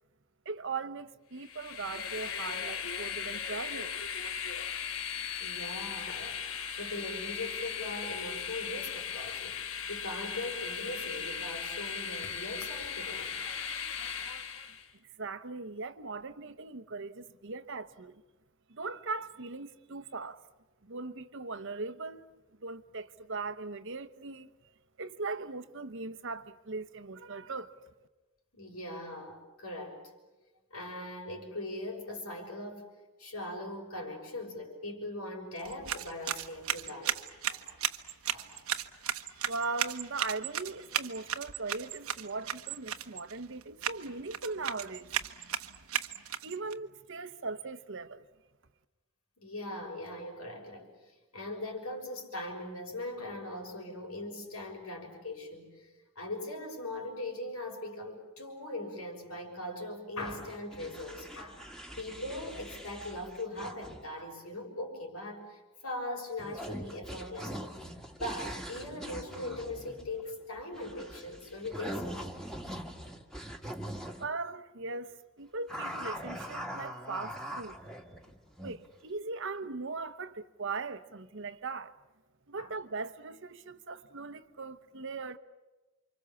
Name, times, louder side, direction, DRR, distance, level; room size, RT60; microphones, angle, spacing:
voice 1, 0.4-3.9 15.2-18.2 18.7-20.4 20.8-22.3 22.6-24.5 25.0-27.7 39.4-45.1 46.4-48.2 74.2-77.7 78.6-82.0 82.5-85.4, right 3 dB, 60° right, 1.0 m, -39 dB
Train, 1.4-14.9, left 7 dB, 65° left, 1.3 m, -37 dB
voice 2, 5.4-6.4 6.8-13.4 28.5-30.0 30.7-32.9 33.2-37.2 37.5-37.8 38.3-38.6 49.4-61.7 62.0-67.8 68.2-72.2 82.6-82.7, left 1 dB, 80° left, 6.4 m, -40 dB
sound 1, 35.6-46.7, right 9 dB, 80° right, 1.2 m, -36 dB
sound 2, 60.2-64.2 66.4-74.2 75.7-78.9, equal, ahead, 1.8 m, -42 dB
29.0 x 25.5 x 7.2 m
head